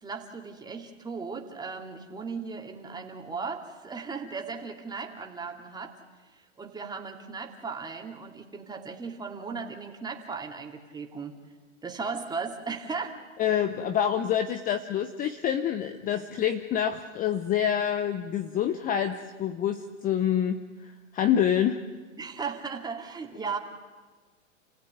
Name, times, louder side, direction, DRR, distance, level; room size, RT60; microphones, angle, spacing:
voice 1, 0.0-5.9 6.3-11.3 11.8-13.2 22.2-23.6, right 5 dB, 10° right, 2 dB, 2.7 m, -36 dB
voice 2, 13.4-21.8, left 9 dB, 20° left, 9 dB, 0.9 m, -27 dB
29.5 x 16.0 x 9.5 m, 1.4 s
hypercardioid pair, 130°, 38 cm